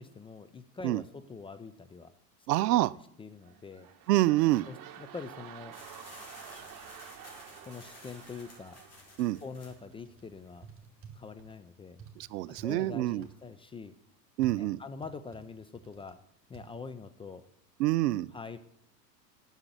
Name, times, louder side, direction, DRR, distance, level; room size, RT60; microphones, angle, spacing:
voice 1, 0.0-2.1 2.7-2.8 3.2-3.9 4.7-5.7 7.6-8.8 9.4-10.7 11.2-12.0 12.5-13.9 14.6-16.2 16.5-17.5 18.3-18.6, left 4 dB, 10° left, 10 dB, 0.4 m, -44 dB
voice 2, 2.5-2.9 4.1-4.7 9.2-9.4 12.2-13.3 14.4-14.8 17.8-18.3, right 16 dB, 70° right, 21 dB, 0.5 m, -26 dB
sound 1, 3.4-9.9 10.5-10.6, right 9 dB, 40° right, 1.5 m, -50 dB
sound 2, 5.7-11.3, left 3 dB, 30° left, 4.5 m, -54 dB
sound 3, 9.7-10.2 10.6-11.5 12.0-12.7 13.2-13.4 14.4-16.2 16.5-16.7, right 7 dB, 25° right, 2.5 m, -50 dB
9.7 x 7.2 x 7.9 m, 0.70 s
hypercardioid pair, 90°, 50 cm